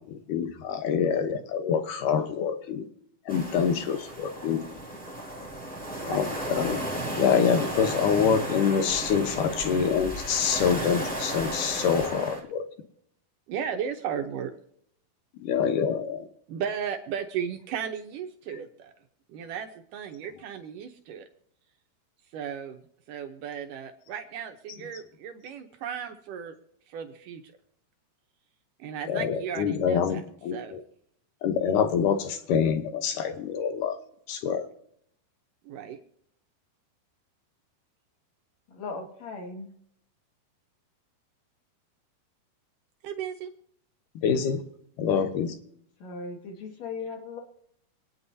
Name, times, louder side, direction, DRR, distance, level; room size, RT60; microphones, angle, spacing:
voice 1, 0.1-2.9 3.3-4.6 6.0-6.8 7.2-12.6 15.3-16.3 29.1-30.8 31.4-34.0 34.3-34.7 44.2-44.6 45.0-45.6, left 7 dB, 70° left, 8 dB, 2.1 m, -26 dB
sound 1, 3.3-12.4, right 1 dB, 5° left, 0.8 m, -34 dB
voice 2, 5.9-6.2 13.5-14.5 16.5-18.9 19.3-21.3 22.3-22.8 23.1-26.6 26.9-27.4 28.8-30.2 30.5-30.8 35.6-36.0 43.0-43.5, right 8 dB, 70° right, 5 dB, 2.1 m, -35 dB
voice 3, 38.7-39.7 46.0-47.4, left 4 dB, 50° left, 2 dB, 2.6 m, -37 dB
26.5 x 9.5 x 2.7 m, 0.70 s
omnidirectional pair, 4.6 m